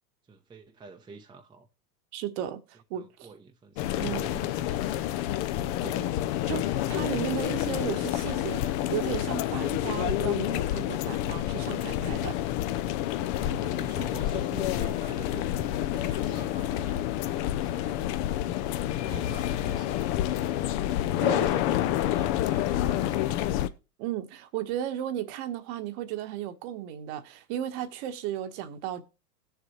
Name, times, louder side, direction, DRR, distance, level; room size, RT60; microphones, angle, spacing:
voice 1, 0.3-1.7 2.9-5.6 13.3-17.2 17.5-23.7, right 4 dB, 10° right, 0.9 m, -47 dB
voice 2, 2.1-3.3 4.0-4.4 5.8-6.1 6.5-12.4 21.2-21.5 24.0-29.0, right 11 dB, 45° right, 1.4 m, -35 dB
sound 1, 3.8-23.7, left 13 dB, 35° left, 0.7 m, -28 dB
17.0 x 6.9 x 3.2 m
hypercardioid pair, 110°, 48 cm